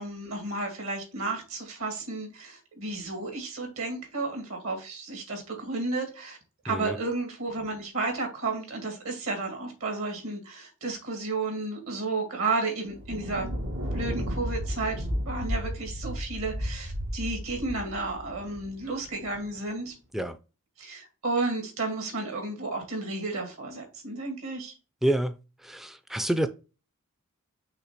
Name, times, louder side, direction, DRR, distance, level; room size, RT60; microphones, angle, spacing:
voice 1, 0.0-6.4 6.6-13.5 13.9-19.9 20.8-24.7, right 3 dB, 70° right, 2.4 m, -32 dB
Thunder, 12.9-19.5, equal, 90° right, 2.0 m, -33 dB
voice 2, 25.0-25.3 25.6-26.5, right 1 dB, ahead, 0.3 m, -27 dB
5.8 x 3.3 x 5.7 m
head